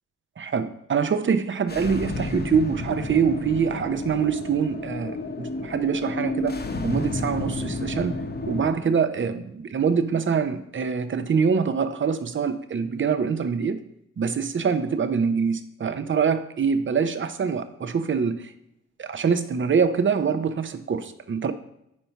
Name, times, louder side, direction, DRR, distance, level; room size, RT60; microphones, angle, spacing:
voice 1, 0.4-6.6 6.8-8.2 8.5-13.8 14.2-18.4 19.0-21.5, right 6 dB, 40° right, 11 dB, 0.6 m, -24 dB
sound 1, 1.7-8.7, left 2 dB, 35° left, 0.8 m, -31 dB
4.4 x 4.3 x 5.5 m, 0.80 s
cardioid pair, 50°, 29 cm